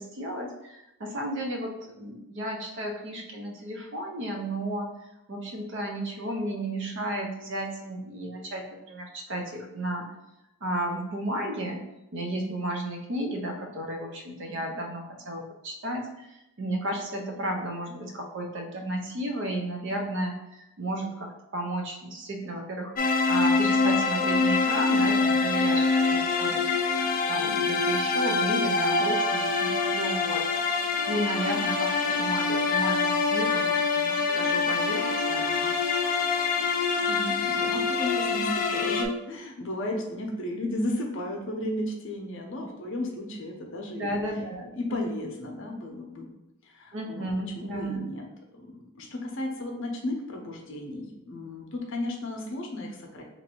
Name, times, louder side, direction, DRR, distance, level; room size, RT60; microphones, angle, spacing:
voice 1, 0.0-10.1 10.6-11.8 12.1-35.8 44.0-44.7 46.9-48.0, right 1 dB, 55° right, 2 dB, 0.6 m, -33 dB
sound 1, 23.0-39.0, left 4 dB, 40° left, 0.3 m, -25 dB
voice 2, 36.9-44.2 44.7-46.3 46.6-47.3 47.6-48.3 48.5-53.2, left 1 dB, 55° left, 1 dB, 0.7 m, -34 dB
3.0 x 2.6 x 4.3 m, 0.91 s
head